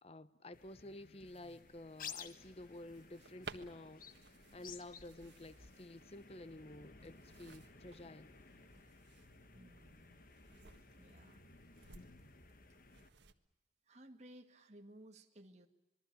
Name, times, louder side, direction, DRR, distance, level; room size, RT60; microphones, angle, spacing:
voice 1, 0.0-8.3, left 1 dB, 35° left, 0.9 m, -52 dB
sound 1, 0.5-13.1, left 6 dB, 50° left, 1.5 m, -56 dB
sound 2, 1.2-13.3, right 4 dB, 85° right, 1.6 m, -59 dB
voice 2, 9.5-10.2 11.0-11.4 13.9-15.7, right 1 dB, 40° right, 2.1 m, -58 dB
26.5 x 22.0 x 8.6 m
head